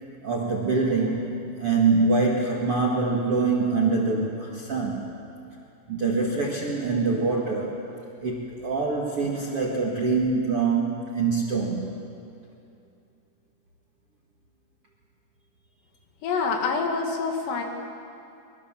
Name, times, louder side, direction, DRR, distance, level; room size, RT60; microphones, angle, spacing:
voice 1, 0.2-5.1 5.9-7.9 8.2-11.9, right 4 dB, 50° right, -1 dB, 1.8 m, -24 dB
voice 2, 16.2-17.6, left 4 dB, 70° left, 2 dB, 4.3 m, -26 dB
24.0 x 23.0 x 7.4 m, 2.6 s
omnidirectional pair, 5.2 m